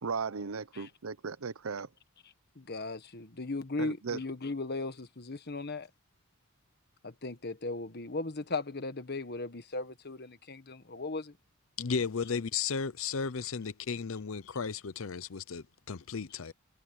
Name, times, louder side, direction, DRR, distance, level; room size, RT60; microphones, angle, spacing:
voice 1, 0.0-1.9 3.8-4.2, right 5 dB, 75° right, 0.7 m, -36 dB
voice 2, 2.6-5.9 7.0-11.3, left 3 dB, 50° left, 1.5 m, -37 dB
voice 3, 11.8-16.5, left 5 dB, 70° left, 0.7 m, -34 dB
head